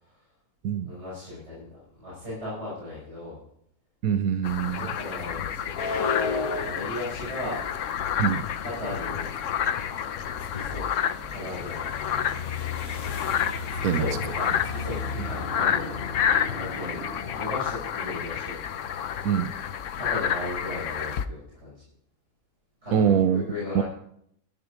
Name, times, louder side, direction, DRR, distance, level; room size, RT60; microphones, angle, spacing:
voice 1, 0.9-3.4 4.7-6.1 6.5-7.6 8.6-9.3 10.4-11.9 13.7-15.9 16.6-17.0 17.4-18.6 19.6-21.8 22.8-23.8, left 1 dB, 50° right, -8 dB, 6.4 m, -37 dB
voice 2, 4.0-4.9 8.2-8.4 13.8-14.1 19.2-19.5 22.9-23.4 23.7-23.8, right 8 dB, 85° right, 11 dB, 1.2 m, -23 dB
sound 1, 4.4-21.3, left 9 dB, 65° left, 1.0 m, -30 dB
sound 2, 5.2-16.7, left 4 dB, 85° left, 1.8 m, -36 dB
sound 3, 12.9-17.8, left 1 dB, 45° left, 2.4 m, -40 dB
14.0 x 10.5 x 5.1 m, 0.70 s
omnidirectional pair, 1.5 m